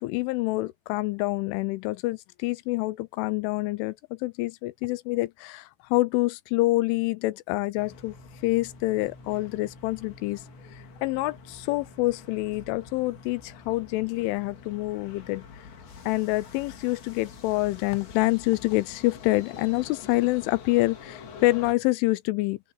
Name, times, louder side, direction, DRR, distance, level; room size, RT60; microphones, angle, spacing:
voice 1, 0.0-8.2 8.4-10.4 10.7-15.4 16.1-22.6, left 20 dB, 85° left, 3.1 m, -27 dB
sound 1, 7.8-21.7, left 5 dB, 65° left, 5.8 m, -46 dB
open air
omnidirectional pair, 5.6 m